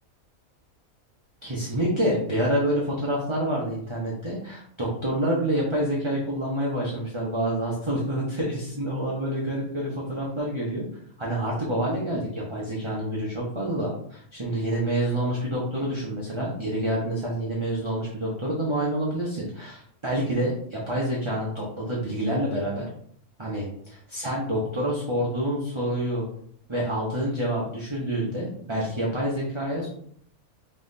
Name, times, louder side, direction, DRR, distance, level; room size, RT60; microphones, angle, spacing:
voice 1, 1.4-10.8 11.2-22.9 23.4-26.2 26.7-29.9, right 1 dB, 25° right, -4 dB, 0.7 m, -27 dB
5.5 x 3.1 x 2.7 m, 0.64 s
omnidirectional pair, 1.5 m